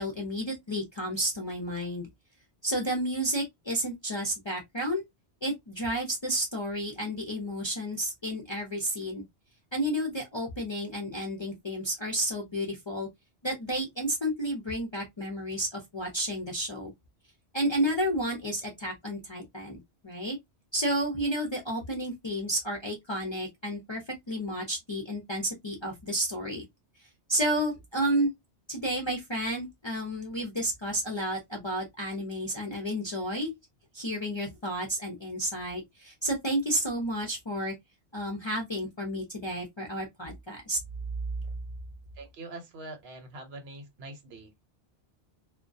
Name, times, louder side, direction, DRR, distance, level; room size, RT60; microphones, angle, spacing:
voice 1, 0.0-2.1 2.6-5.0 5.4-9.2 9.7-13.1 13.4-16.9 17.5-20.4 20.7-26.6 27.3-28.3 28.7-33.5 33.9-37.7 38.1-40.8, right 1 dB, 35° left, 0.4 m, -31 dB
voice 2, 42.1-44.7, right 2 dB, 65° right, 0.9 m, -44 dB
2.2 x 2.2 x 2.5 m
omnidirectional pair, 1.1 m